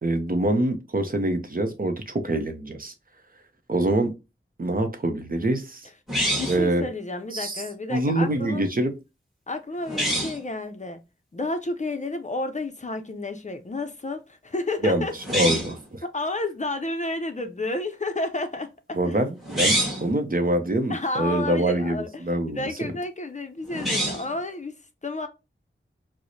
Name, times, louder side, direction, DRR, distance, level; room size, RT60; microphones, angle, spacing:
voice 1, 0.0-2.9 3.7-4.1 4.6-5.9 6.5-6.9 7.3-7.6 7.9-8.9 14.8-15.0 15.3-16.0 18.9-22.9, right 1 dB, 45° right, 0.6 m, -25 dB
sound 1, 6.1-6.7 9.9-10.4 15.2-15.8 19.4-20.1 23.7-24.3, equal, ahead, 1.3 m, -26 dB
voice 2, 6.2-8.7 9.5-11.0 11.3-15.1 16.0-19.2 20.9-25.3, left 2 dB, 35° left, 0.5 m, -31 dB
4.6 x 2.0 x 2.6 m
wide cardioid pair, 70°, 21 cm